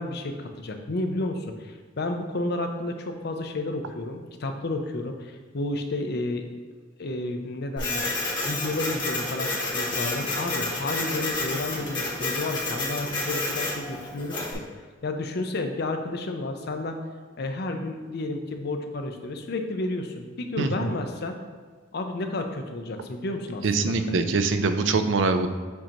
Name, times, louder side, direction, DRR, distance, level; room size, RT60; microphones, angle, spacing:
voice 1, 0.0-6.5 7.0-8.1 8.4-14.6 15.0-17.0 17.4-21.4 21.9-24.3, left 2 dB, 60° left, 5 dB, 0.6 m, -31 dB
Printer, 7.8-14.5, left 2 dB, 25° left, 1.7 m, -30 dB
voice 2, 23.6-25.5, right 4 dB, 75° right, 8 dB, 0.5 m, -23 dB
7.4 x 2.9 x 4.4 m, 1.5 s
head